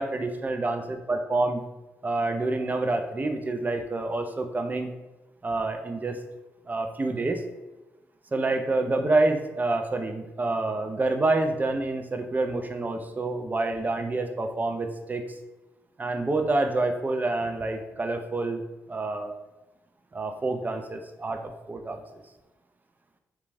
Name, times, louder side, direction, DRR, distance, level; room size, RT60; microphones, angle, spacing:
voice 1, 0.0-1.6 2.0-4.9 5.4-6.2 6.7-7.4 8.3-15.2 16.0-18.6 18.9-19.3 20.1-22.0, right 2 dB, 30° right, 6 dB, 0.4 m, -27 dB
2.8 x 2.3 x 2.5 m, 1.1 s
supercardioid pair, 50°, 6 cm